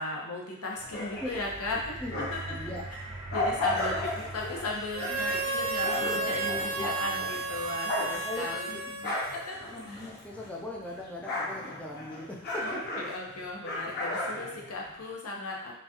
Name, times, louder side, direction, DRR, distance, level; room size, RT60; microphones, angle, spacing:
voice 1, 0.0-2.5 3.3-8.7 9.3-9.6 9.9-10.0 12.6-15.8, left 2 dB, 85° left, -2 dB, 0.9 m, -36 dB
sound 1, 0.8-2.6 3.0-10.6 10.9-15.1, left 2 dB, 45° left, 0.8 m, -35 dB
sound 2, 0.8-11.0 11.7-11.8, right 2 dB, 25° right, 0.7 m, -45 dB
voice 2, 1.2-1.7 2.0-2.8 5.8-6.9 8.1-9.3 9.6-13.0, left 1 dB, 5° left, -3 dB, 0.4 m, -40 dB
Harmonica, 4.9-9.8, right 3 dB, 70° right, 0.6 m, -32 dB
5.3 x 2.3 x 2.8 m, 0.79 s
head